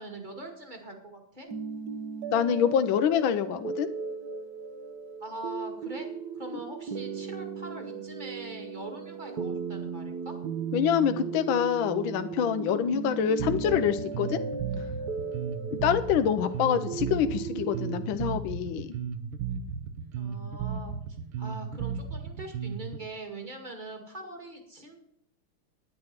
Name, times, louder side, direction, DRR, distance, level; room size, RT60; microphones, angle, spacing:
voice 1, 0.0-1.5 5.2-6.1 6.3-10.4 20.2-20.9 21.4-25.0, right 2 dB, 20° right, 4 dB, 2.0 m, -42 dB
sound 1, 1.5-18.1, right 5 dB, 55° right, 1.3 m, -36 dB
voice 2, 2.3-3.9 10.7-14.4 14.8-14.9 15.7-18.9, left 9 dB, 75° left, 9 dB, 1.4 m, -26 dB
Bass guitar, 13.4-23.0, right 7 dB, 80° right, 1.9 m, -35 dB
9.9 x 9.7 x 5.8 m, 0.74 s
omnidirectional pair, 2.3 m